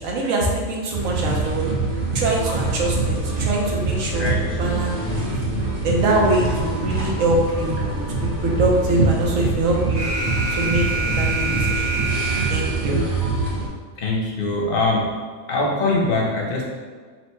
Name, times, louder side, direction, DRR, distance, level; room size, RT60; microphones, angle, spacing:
voice 1, 0.0-1.6 2.1-4.3 4.6-5.2 5.8-10.1 10.5-12.0 12.5-13.0, right 2 dB, 90° right, -2 dB, 1.2 m, -23 dB
sound 1, 0.9-13.7, right 3 dB, 35° right, 0.8 m, -24 dB
Alarm, 9.9-12.9, right 3 dB, 70° right, 1.3 m, -26 dB
voice 2, 14.0-15.1 15.5-16.7, left 2 dB, 50° left, -2 dB, 0.9 m, -22 dB
4.4 x 2.1 x 4.2 m, 1.5 s
omnidirectional pair, 1.3 m